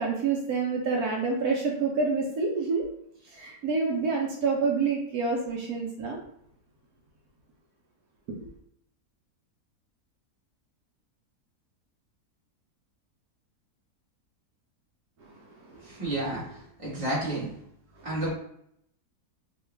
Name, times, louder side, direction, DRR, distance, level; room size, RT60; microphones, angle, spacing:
voice 1, 0.0-2.8 3.3-6.2 8.4-8.5 15.6-15.7, right 4 dB, 75° right, -1 dB, 1.1 m, -27 dB
voice 2, 15.8-17.5 18.0-18.3, right 1 dB, 25° right, -7 dB, 1.2 m, -31 dB
3.0 x 2.2 x 3.2 m, 0.73 s
omnidirectional pair, 1.7 m